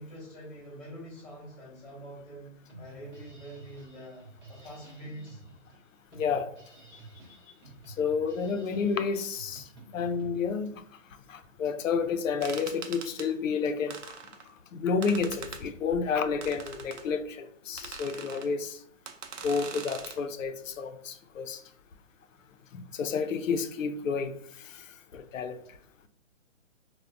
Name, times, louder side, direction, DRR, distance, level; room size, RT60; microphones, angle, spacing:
voice 1, 0.0-5.4, right 1 dB, 10° left, 0.5 m, -45 dB
Drum kit, 2.7-10.3, right 2 dB, 35° right, 0.8 m, -51 dB
voice 2, 6.1-6.5 7.9-9.7 9.9-10.8 11.3-14.0 14.7-18.8 19.4-21.6 22.7-24.3 24.6-24.8 25.1-25.6, left 5 dB, 90° left, 0.5 m, -30 dB
sound 1, 12.4-13.3 13.9-14.5 15.0-15.6 16.4-17.0 17.8-18.5 19.1-20.2, right 6 dB, 70° right, 0.5 m, -42 dB
3.2 x 2.1 x 2.4 m
hypercardioid pair, 155°, 38 cm